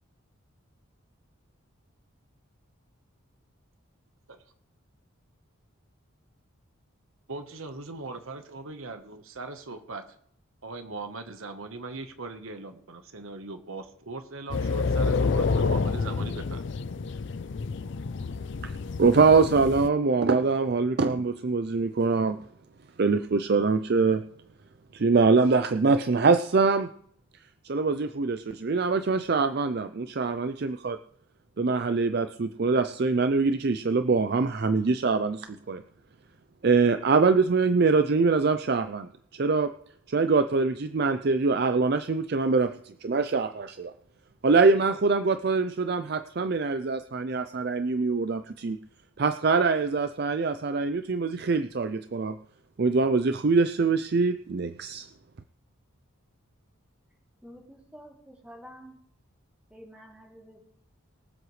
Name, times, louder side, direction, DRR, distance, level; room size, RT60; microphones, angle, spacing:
voice 1, 7.3-10.0 10.6-16.4, right 3 dB, 75° right, 7 dB, 1.2 m, -39 dB
sound 1, 14.5-19.9, left 4 dB, 55° left, 0.4 m, -28 dB
voice 2, 19.0-22.4 23.0-24.2 24.9-26.9 27.6-31.0 31.6-35.8 36.6-39.7 40.1-43.9 44.4-48.8 49.2-52.4 52.8-55.1, right 4 dB, 50° right, 10 dB, 0.4 m, -24 dB
voice 3, 57.4-59.0 59.7-60.6, equal, 5° right, -2 dB, 2.9 m, -48 dB
23.5 x 7.8 x 3.2 m, 0.66 s
head